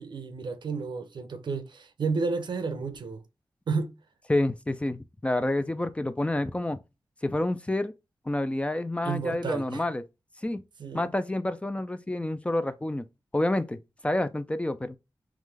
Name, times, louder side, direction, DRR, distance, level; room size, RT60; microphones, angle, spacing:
voice 1, 0.0-3.2 3.7-3.9 9.0-9.9 10.8-11.1, right 4 dB, 85° right, 0.7 m, -31 dB
voice 2, 4.3-6.8 7.2-7.9 8.3-10.0 10.4-10.6 10.9-13.1 13.3-15.0, left 1 dB, 15° left, 0.5 m, -28 dB
3.7 x 3.1 x 3.3 m
wide cardioid pair, 80°, 8 cm